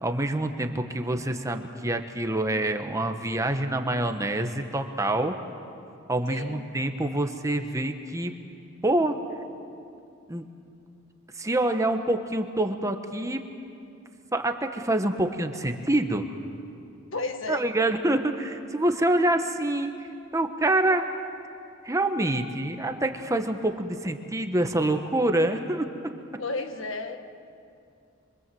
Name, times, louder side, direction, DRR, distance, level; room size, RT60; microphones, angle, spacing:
voice 1, 0.0-5.4 6.1-8.3 8.8-9.2 10.3-10.4 11.3-13.4 14.3-16.2 17.5-20.0 20.3-21.1 21.8-25.9, right 1 dB, 15° right, 6 dB, 1.2 m, -26 dB
voice 2, 6.3-6.6 17.1-17.6 26.4-27.2, left 3 dB, 70° left, 6 dB, 1.7 m, -32 dB
25.5 x 24.5 x 7.8 m, 2.5 s
head